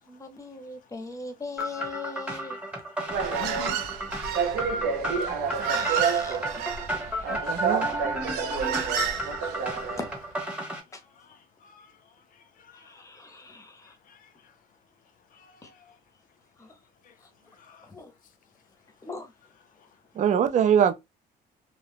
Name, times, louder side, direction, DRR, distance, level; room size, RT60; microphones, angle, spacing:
voice 1, 0.1-2.6 5.7-6.9 10.0-10.1 10.9-11.0 12.7-14.0 15.6-15.7 16.6-16.8 17.8-18.1 19.0-19.3, left 3 dB, 20° left, 0.7 m, -40 dB
Stereo wave, 1.6-10.8, equal, 5° right, 1.0 m, -33 dB
Human voice, 3.1-10.2, right 7 dB, 80° right, 0.7 m, -29 dB
voice 2, 3.4-3.8 4.1-4.3 4.7-5.1 5.5-5.8 7.1-7.4 9.1-9.5 11.2-11.9 12.6-12.8 14.1-14.2 15.4-15.9 17.6-17.8, left 6 dB, 55° left, 0.6 m, -48 dB
voice 3, 7.3-7.9 20.2-20.9, right 8 dB, 45° right, 0.5 m, -22 dB
2.4 x 2.3 x 3.4 m
cardioid pair, 110°, 17 cm